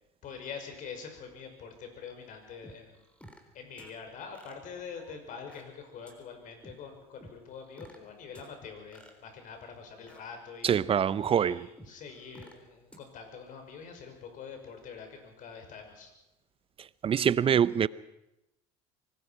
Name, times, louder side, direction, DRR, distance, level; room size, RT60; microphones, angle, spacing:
voice 1, 0.2-3.0 3.5-10.8 11.3-16.1, left 6 dB, 55° left, 5.9 m, -45 dB
sound 1, 2.6-3.5 3.8-3.9 4.3-5.6 6.1-6.2 6.6-6.7 7.2-8.0 8.3-8.5 8.9-10.2 10.6-10.7 11.2-11.3 11.8-12.5 12.9-13.0, equal, 5° left, 3.8 m, -52 dB
voice 2, 10.6-11.7 17.0-17.9, right 8 dB, 35° right, 0.8 m, -25 dB
24.5 x 19.5 x 6.0 m
supercardioid pair, 90°, 16 cm